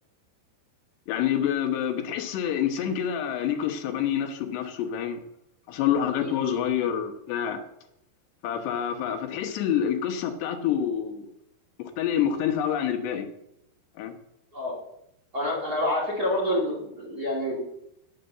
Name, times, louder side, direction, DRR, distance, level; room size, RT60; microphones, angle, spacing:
voice 1, 1.1-5.2 5.7-7.6 8.4-11.3 12.0-13.3 14.0-14.1, left 9 dB, 85° left, 5 dB, 3.4 m, -27 dB
voice 2, 15.3-17.6, left 1 dB, 30° right, -4 dB, 1.8 m, -27 dB
10.0 x 6.8 x 7.8 m, 0.81 s
omnidirectional pair, 4.7 m